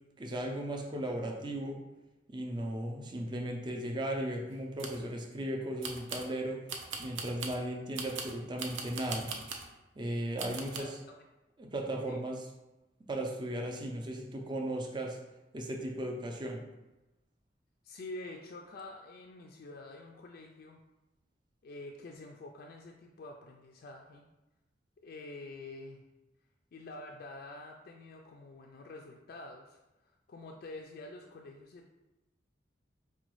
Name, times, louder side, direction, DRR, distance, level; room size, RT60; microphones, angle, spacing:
voice 1, 0.2-1.8 2.3-6.6 7.0-9.3 10.0-11.0 11.6-12.4 13.1-15.2 15.5-16.6, right 1 dB, 25° right, 1 dB, 0.4 m, -36 dB
sound 1, 4.5-5.0 5.8-6.3 6.7-7.6 8.0-9.7 10.4-10.8, right 5 dB, 85° right, 0.5 m, -40 dB
voice 2, 10.8-11.2 12.1-12.2 17.8-20.8 21.6-24.3 25.0-26.0 26.7-31.9, left 2 dB, 55° left, 1 dB, 0.3 m, -47 dB
4.9 x 2.3 x 3.0 m, 1.0 s
head